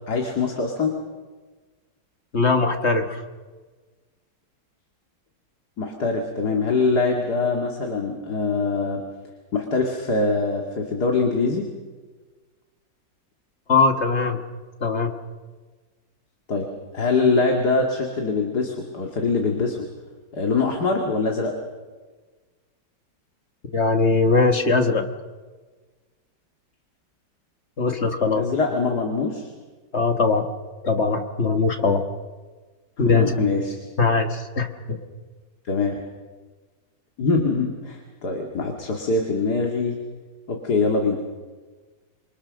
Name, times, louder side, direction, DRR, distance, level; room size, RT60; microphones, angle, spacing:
voice 1, 0.1-0.9 5.8-9.0 9.5-11.7 16.5-16.7 16.9-19.8 20.3-21.5 28.4-29.5 33.0-33.8 35.7-36.0 37.2-40.0 40.5-41.2, left 4 dB, 60° left, 2 dB, 2.7 m, -23 dB
voice 2, 2.3-3.2 13.7-14.4 14.8-15.1 23.7-25.0 27.8-28.4 29.9-30.5 30.8-32.0 33.0-33.3 34.0-35.0, left 4 dB, 40° left, 6 dB, 1.6 m, -20 dB
27.5 x 23.5 x 6.5 m, 1.4 s
omnidirectional pair, 2.0 m